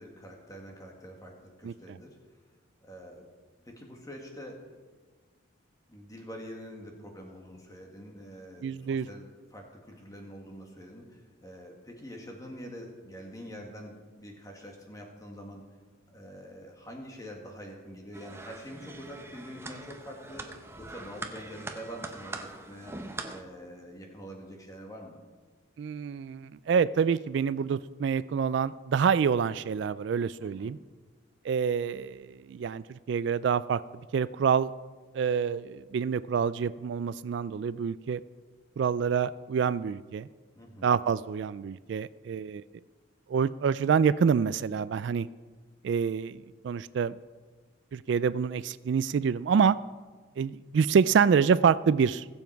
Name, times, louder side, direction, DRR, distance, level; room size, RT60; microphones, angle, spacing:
voice 1, 0.0-2.2 2.8-3.3 3.6-4.7 5.9-15.6 16.1-22.9 23.3-25.2 30.4-30.7 40.6-40.9, equal, 20° left, 1 dB, 1.9 m, -45 dB
voice 2, 8.6-9.1 25.8-30.8 31.4-33.8 34.1-34.7 35.1-38.2 38.8-40.3 40.8-42.6 43.3-45.3 45.8-47.2 47.9-49.8 50.4-52.4, right 6 dB, 65° right, 16 dB, 0.3 m, -27 dB
sound 1, 18.1-23.4, right 2 dB, 15° right, 0.8 m, -42 dB
21.0 x 7.1 x 4.6 m, 1.4 s
head